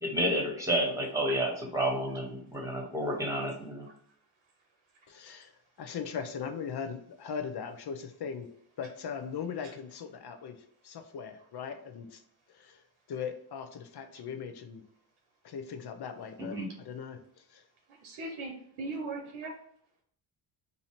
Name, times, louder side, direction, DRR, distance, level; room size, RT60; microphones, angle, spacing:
voice 1, 0.0-3.9 16.4-16.7, right 1 dB, 5° right, -1 dB, 1.5 m, -30 dB
voice 2, 5.1-5.5 5.8-8.5 8.8-10.6 10.8-12.2 12.5-12.8 13.1-14.8 15.4-16.6 16.8-17.6, left 6 dB, 55° left, 8 dB, 0.7 m, -39 dB
voice 3, 17.9-19.5, right 2 dB, 80° right, 1 dB, 0.9 m, -39 dB
2.8 x 2.7 x 4.4 m, 0.66 s
cardioid pair, 60°, 48 cm